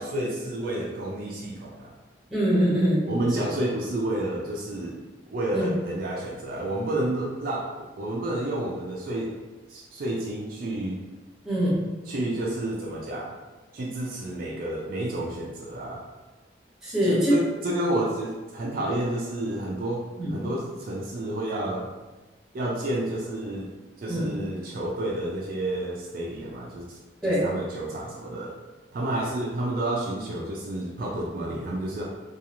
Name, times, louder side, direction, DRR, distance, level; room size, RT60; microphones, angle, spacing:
voice 1, 0.0-1.9 3.1-5.0 5.3-9.3 9.7-11.0 12.1-13.4 13.7-16.0 17.0-21.9 22.5-23.7 24.0-28.6 28.9-32.0, right 1 dB, 50° right, -3 dB, 0.3 m, -30 dB
voice 2, 2.3-3.1 5.5-5.7 11.4-11.8 16.8-17.3 20.2-20.3 24.1-24.3 27.2-27.4, equal, 5° right, -8 dB, 0.9 m, -23 dB
2.9 x 2.3 x 2.5 m, 1.2 s
head